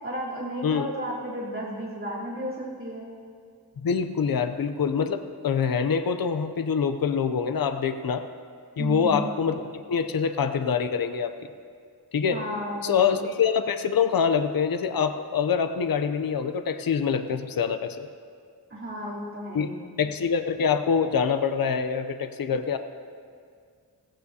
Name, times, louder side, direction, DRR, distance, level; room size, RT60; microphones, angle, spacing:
voice 1, 0.0-3.0 8.8-9.3 12.3-13.2 18.7-19.9, equal, 35° right, -7 dB, 3.5 m, -33 dB
voice 2, 3.8-8.3 8.8-9.5 9.9-11.3 12.1-12.4 12.8-18.1 19.5-19.7 20.0-22.8, left 6 dB, 65° left, 9 dB, 0.7 m, -25 dB
16.5 x 15.0 x 2.8 m, 2.1 s
wide cardioid pair, 105°, 38 cm